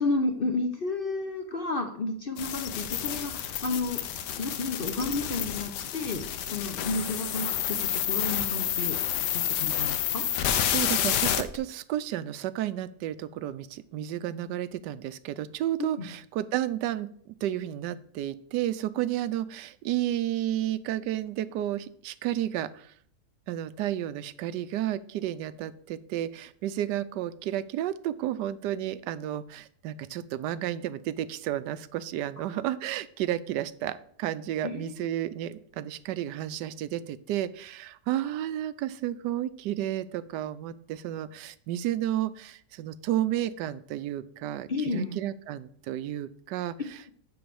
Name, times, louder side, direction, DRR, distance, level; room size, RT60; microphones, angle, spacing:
voice 1, 0.0-4.0 4.4-9.0 9.3-10.2 16.0-16.1 34.6-35.2 44.7-45.2, left 3 dB, 50° left, 5 dB, 0.7 m, -32 dB
sound 1, 2.4-11.6, left 10 dB, 85° left, 1.3 m, -29 dB
voice 2, 10.7-22.9 23.5-47.1, right 12 dB, 85° right, 15 dB, 1.2 m, -32 dB
9.5 x 4.0 x 6.9 m, 0.62 s
omnidirectional pair, 1.8 m